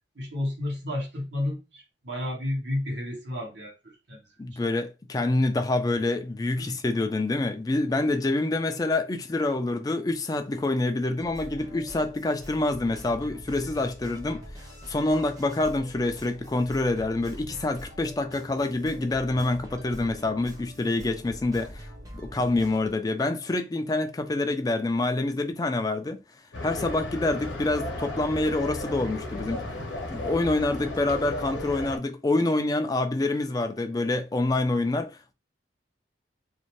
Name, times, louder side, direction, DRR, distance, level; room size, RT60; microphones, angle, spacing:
voice 1, 0.1-4.2 6.6-6.7, left 1 dB, 70° right, 1.1 m, -32 dB
voice 2, 4.4-14.4 14.9-21.9 22.1-26.2 26.6-29.7 30.1-35.3, left 2 dB, 20° left, 0.3 m, -26 dB
sound 1, 11.2-22.9, equal, 20° right, 0.7 m, -44 dB
sound 2, 26.5-32.0, left 1 dB, 80° left, 0.8 m, -34 dB
2.6 x 2.1 x 3.0 m
head